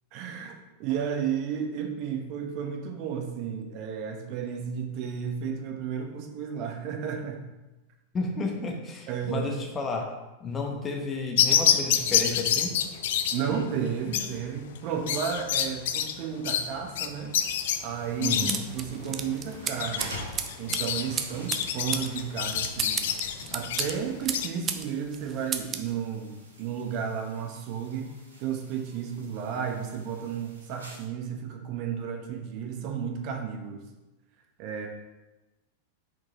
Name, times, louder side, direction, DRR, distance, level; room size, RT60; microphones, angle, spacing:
voice 1, 0.1-0.5 0.8-7.5 9.1-9.5 13.3-17.3 17.8-20.2 20.6-23.0 23.5-28.1 28.4-33.9 34.6-34.9, right 7 dB, 40° right, 4 dB, 1.0 m, -33 dB
voice 2, 8.1-12.8 18.2-18.7, left 3 dB, 20° left, 2 dB, 1.0 m, -32 dB
sound 1, 11.4-24.5, left 9 dB, 55° left, 0.5 m, -28 dB
sound 2, 17.3-31.0, equal, 75° right, 1.7 m, -47 dB
sound 3, 18.5-24.9 25.1-25.9, right 7 dB, 25° right, 0.5 m, -34 dB
6.0 x 5.0 x 3.7 m, 1.0 s
figure-of-eight pair, 90°, 0 cm